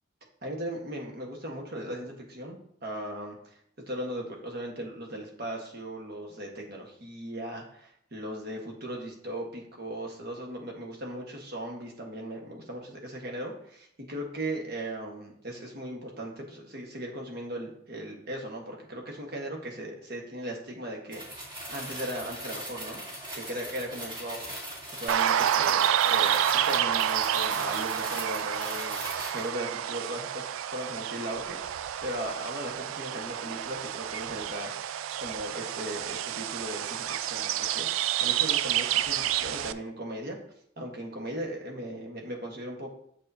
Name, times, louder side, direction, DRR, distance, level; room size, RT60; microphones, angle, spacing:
voice 1, 0.4-3.3 3.9-23.0 23.3-24.5 24.9-34.7 35.2-40.4 40.8-42.9, right 1 dB, 50° right, 0 dB, 1.4 m, -38 dB
sound 1, 21.1-29.5, right 1 dB, 25° right, 2.2 m, -40 dB
sound 2, 25.1-39.7, right 10 dB, 85° right, 0.3 m, -29 dB
6.9 x 6.5 x 2.7 m, 0.68 s
head